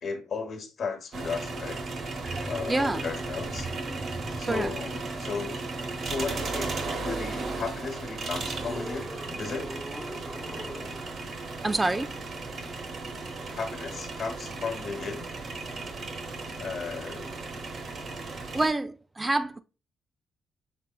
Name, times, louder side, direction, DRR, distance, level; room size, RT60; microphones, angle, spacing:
voice 1, 0.0-1.8 2.5-3.7 4.4-5.6 6.0-9.7 10.4-11.0 13.5-15.3 16.6-17.4, left 5 dB, 55° left, 1.1 m, -35 dB
sound 1, 1.1-18.7, right 3 dB, 55° right, 1.0 m, -35 dB
sound 2, 1.8-4.9 7.4-7.5 8.2-11.3 13.8-13.9, right 1 dB, 5° right, 0.8 m, -41 dB
voice 2, 2.7-3.0 4.5-4.7 11.6-12.1 18.5-19.6, right 2 dB, 20° right, 0.3 m, -27 dB
6.0 x 3.6 x 2.2 m
cardioid pair, 90°, 0 cm